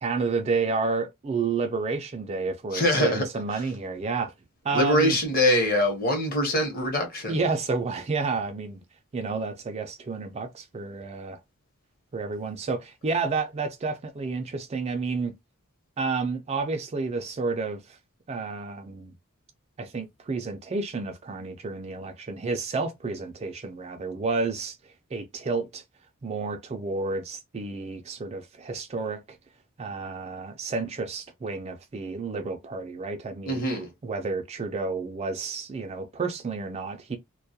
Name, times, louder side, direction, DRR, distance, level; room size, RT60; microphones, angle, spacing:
voice 1, 0.0-4.3 4.6-5.2 7.3-8.8 9.1-11.4 12.1-15.3 16.0-18.0 18.3-19.1 19.8-24.8 25.1-25.8 26.2-29.2 29.8-33.6 34.0-37.2, right 4 dB, 30° right, 0.3 m, -30 dB
voice 2, 2.7-3.3 4.7-7.4 33.5-33.9, left 1 dB, 40° left, 0.9 m, -23 dB
2.2 x 2.1 x 2.7 m
head